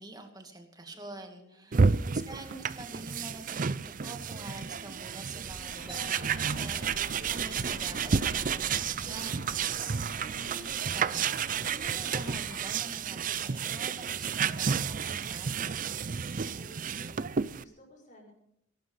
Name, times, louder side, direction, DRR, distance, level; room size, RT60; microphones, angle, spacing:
voice 1, 0.0-9.4 10.2-10.7 10.9-13.2 13.4-15.6, right 2 dB, 20° right, 4 dB, 2.3 m, -46 dB
voice 2, 0.9-1.8 15.9-18.3, equal, 45° left, -3 dB, 6.3 m, -57 dB
sound 1, 1.7-17.6, right 6 dB, 45° right, 0.5 m, -31 dB
sound 2, 5.4-12.6, left 1 dB, 85° left, 2.8 m, -47 dB
Doorbell, 5.9-11.3, left 2 dB, ahead, 4.8 m, -56 dB
20.5 x 11.5 x 5.5 m, 0.74 s
head